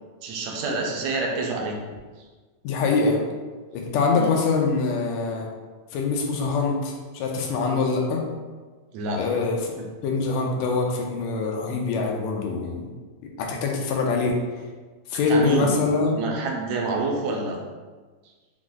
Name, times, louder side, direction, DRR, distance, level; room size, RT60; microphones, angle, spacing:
voice 1, 0.2-1.8 4.2-4.3 8.9-9.2 15.3-15.9 16.2-17.6, right 3 dB, 80° right, 0 dB, 1.8 m, -27 dB
voice 2, 2.6-3.2 3.7-5.5 5.9-8.2 9.1-9.7 10.0-12.9 13.4-14.4 15.1-16.2, left 4 dB, 75° left, 0 dB, 1.8 m, -24 dB
6.1 x 2.1 x 3.7 m, 1.4 s
omnidirectional pair, 3.4 m